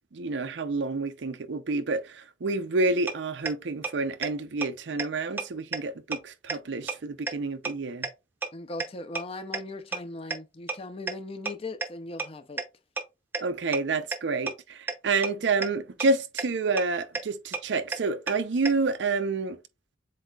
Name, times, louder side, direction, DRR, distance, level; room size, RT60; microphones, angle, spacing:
voice 1, 0.1-8.1 13.4-19.6, right 3 dB, 90° right, 0.6 m, -29 dB
sound 1, 3.1-3.2 3.5-3.6 3.8-3.9 4.2-4.3 4.6-4.7 5.0-5.1 5.4-5.5 5.7-5.8 6.1-6.2 6.5-6.6 6.9-7.0 7.3-7.4 7.6-7.7 8.0-8.1 8.4-8.5 8.8-8.9 9.2-9.3 9.5-9.6 9.9-10.0 10.3-10.4 10.7-10.8 11.1-11.2 11.5-11.6 11.8-11.9 12.2-12.3 12.6-12.7 13.0-13.1 13.3-13.4 13.7-13.8 14.1-14.2 14.5-14.6 14.9-15.0 15.2-15.3 15.6-15.7 16.0-16.1 16.4-16.5 16.8-16.9 17.1-17.2 17.5-17.6 17.9-18.0 18.3-18.4 18.7-18.8, right 4 dB, 10° right, 0.6 m, -29 dB
voice 2, 8.5-12.6, left 2 dB, 30° left, 0.5 m, -39 dB
7.5 x 2.7 x 2.3 m
head